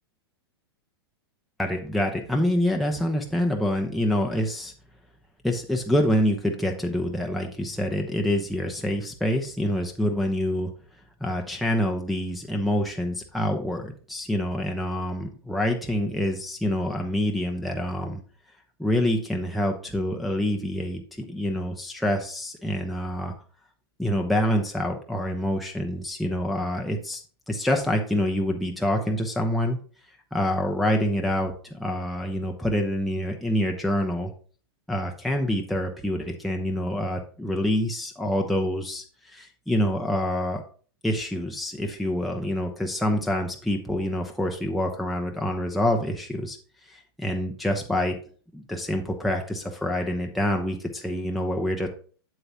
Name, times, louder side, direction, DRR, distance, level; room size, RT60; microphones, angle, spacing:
voice 1, 1.6-4.7 5.4-10.7 11.2-18.2 18.8-21.0 21.3-23.3 24.0-27.2 27.5-29.8 30.3-34.3 34.9-40.6 41.0-46.6 46.8-48.2 48.5-51.9, left 1 dB, ahead, 0 dB, 0.9 m, -26 dB
7.9 x 7.8 x 2.8 m, 0.41 s
hypercardioid pair, 110°, 13 cm